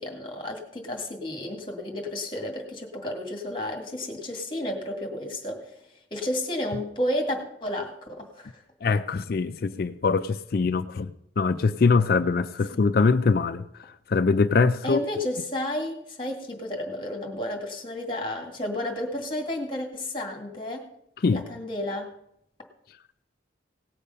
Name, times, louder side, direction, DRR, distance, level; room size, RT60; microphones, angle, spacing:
voice 1, 0.0-8.6 12.7-12.8 14.8-20.9 21.3-22.1, left 1 dB, 25° left, 3 dB, 2.1 m, -32 dB
voice 2, 8.8-11.1 11.4-13.6 14.1-15.0 21.2-21.4, left 4 dB, 50° left, 11 dB, 0.4 m, -23 dB
18.0 x 6.7 x 5.6 m, 0.76 s
head